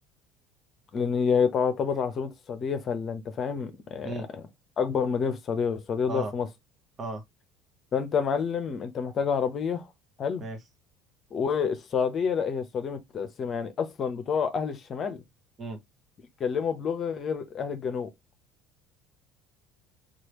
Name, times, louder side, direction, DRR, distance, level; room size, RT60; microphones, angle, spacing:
voice 1, 0.9-4.1 4.8-6.5 7.9-9.9 10.2-10.4 11.3-15.2 16.4-18.1, left 6 dB, 45° left, 0.7 m, -28 dB
voice 2, 4.0-4.3 6.1-6.3 7.0-7.2 10.4-10.6 15.6-15.8, right 2 dB, 35° right, 0.9 m, -34 dB
3.2 x 2.5 x 2.9 m
hypercardioid pair, 75°, 0 cm